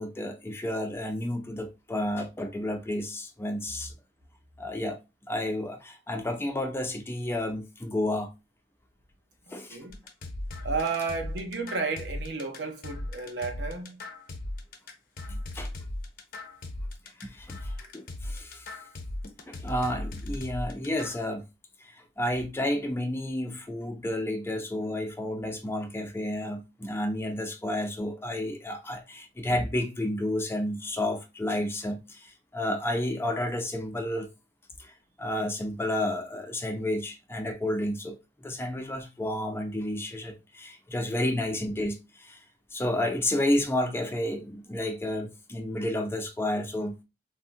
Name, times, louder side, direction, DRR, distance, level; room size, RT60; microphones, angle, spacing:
voice 1, 0.0-3.9 4.6-5.0 5.3-8.3 9.5-9.8 15.3-15.7 17.2-18.7 19.5-21.4 21.8-34.3 34.8-42.4 42.7-47.0, left 1 dB, 15° left, 0.4 m, -31 dB
voice 2, 9.5-10.0 10.6-14.0, right 4 dB, 65° right, 0.7 m, -32 dB
sound 1, 9.9-21.2, left 1 dB, 55° left, 0.6 m, -37 dB
3.4 x 2.1 x 2.5 m
head